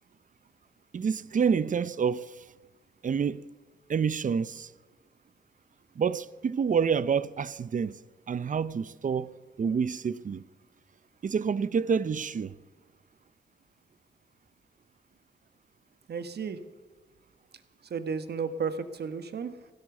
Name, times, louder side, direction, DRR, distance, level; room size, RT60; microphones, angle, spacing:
voice 1, 0.9-2.3 3.0-3.4 3.9-4.7 6.0-8.0 8.3-10.4 11.2-12.5, right 6 dB, 45° right, 0.6 m, -28 dB
voice 2, 16.1-16.6 17.9-19.5, right 5 dB, 65° right, 1.4 m, -33 dB
15.5 x 12.0 x 7.2 m
cardioid pair, 75°, 18 cm